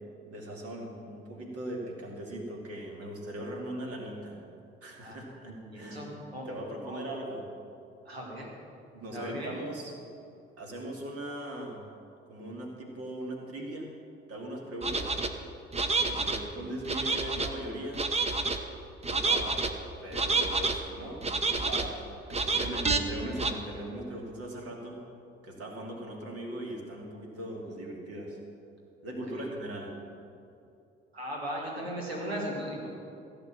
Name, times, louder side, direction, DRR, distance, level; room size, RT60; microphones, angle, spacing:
voice 1, 0.3-4.4 4.8-6.0 6.5-7.4 9.0-9.9 10.6-11.8 12.3-13.9 14.3-15.2 16.0-18.0 19.1-19.6 20.0-25.0 25.4-28.4 29.0-29.9, right 1 dB, 50° right, 0 dB, 2.7 m, -39 dB
voice 2, 5.0-6.5 6.8-7.6 8.1-8.5 8.9-9.5 29.3-29.4 31.1-32.9, equal, 85° right, -2 dB, 2.0 m, -38 dB
sound 1, 14.8-15.3 15.7-16.4 16.9-17.5 17.9-18.6 19.0-19.7 20.1-20.8 21.2-21.9 22.3-23.0 23.4-23.5, right 3 dB, 20° right, 1.0 m, -28 dB
15.5 x 6.8 x 7.5 m, 2.6 s
figure-of-eight pair, 50°, 30 cm